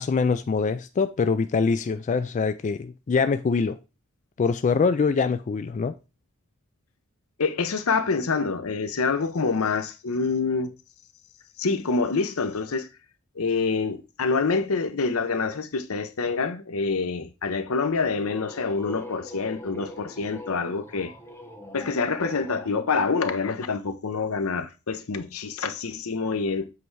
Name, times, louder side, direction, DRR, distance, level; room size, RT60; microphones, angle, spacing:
voice 1, 0.0-3.8 4.4-5.9, left 5 dB, 35° left, 0.3 m, -24 dB
voice 2, 7.4-10.7 11.6-12.9 13.4-21.1 21.7-26.7, left 4 dB, 75° left, 0.8 m, -26 dB
sound 1, 18.2-22.7, left 1 dB, 10° left, 1.1 m, -43 dB
7.7 x 3.4 x 4.6 m
head